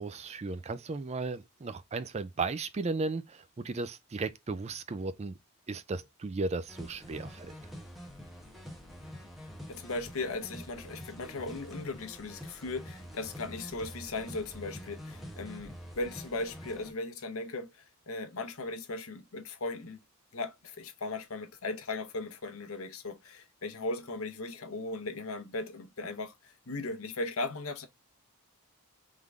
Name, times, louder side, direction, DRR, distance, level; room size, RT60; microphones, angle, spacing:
voice 1, 0.0-5.3 5.7-7.5, right 3 dB, 30° right, 0.4 m, -35 dB
sound 1, 6.7-16.9, equal, ahead, 1.1 m, -46 dB
voice 2, 9.7-20.0 20.3-27.9, left 2 dB, 70° left, 0.9 m, -37 dB
3.7 x 3.3 x 3.5 m
head